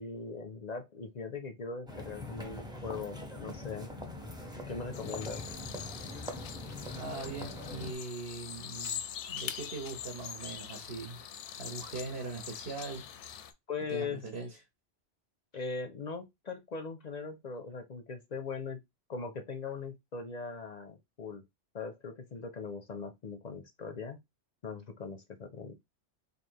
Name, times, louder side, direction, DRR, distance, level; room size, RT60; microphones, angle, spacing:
voice 1, 0.0-3.9 4.7-5.4 13.7-14.2 15.5-18.8 19.1-21.4 21.7-24.2 24.6-25.7, left 4 dB, 50° left, 0.5 m, -40 dB
sound 1, 1.9-7.9, left 1 dB, 5° right, 0.6 m, -42 dB
sound 2, 4.9-13.5, left 8 dB, 85° left, 0.9 m, -43 dB
voice 2, 7.0-9.0 9.3-11.2 11.6-13.1 13.9-14.6, right 3 dB, 65° right, 1.1 m, -41 dB
3.2 x 2.6 x 4.5 m
omnidirectional pair, 1.2 m